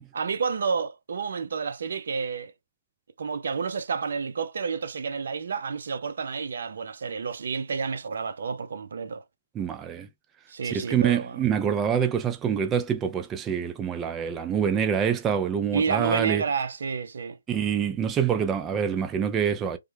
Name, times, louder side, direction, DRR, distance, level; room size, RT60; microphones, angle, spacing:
voice 1, 0.1-2.5 3.2-9.2 10.5-11.4 15.7-17.4, right 5 dB, 65° right, 0.5 m, -30 dB
voice 2, 9.5-10.1 10.6-16.4 17.5-19.8, right 8 dB, 15° right, 0.3 m, -26 dB
3.3 x 2.1 x 3.2 m
hypercardioid pair, 150°, 0 cm